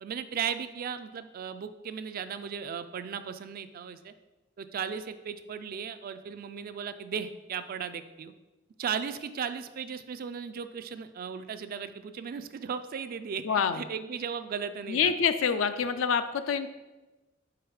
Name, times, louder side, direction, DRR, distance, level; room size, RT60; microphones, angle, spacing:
voice 1, 0.0-4.1 4.6-8.3 8.8-15.1 15.5-15.6, right 7 dB, 45° right, 11 dB, 0.3 m, -36 dB
voice 2, 13.4-13.8 14.9-16.7, left 6 dB, 75° left, 10 dB, 0.4 m, -26 dB
4.8 x 4.2 x 4.7 m, 1.1 s
head